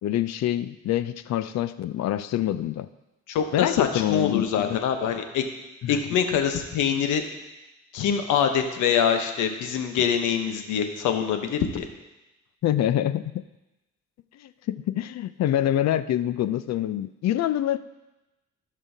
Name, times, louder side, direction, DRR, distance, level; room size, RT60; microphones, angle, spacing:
voice 1, 0.0-2.9 3.5-4.8 5.8-5.9 12.6-13.4 14.4-17.8, left 12 dB, 60° left, 14 dB, 0.5 m, -26 dB
voice 2, 3.3-5.4 5.9-7.2 7.9-11.9, left 8 dB, 85° left, 6 dB, 1.0 m, -24 dB
16.0 x 5.4 x 2.8 m, 1.0 s
cardioid pair, 90°, 30 cm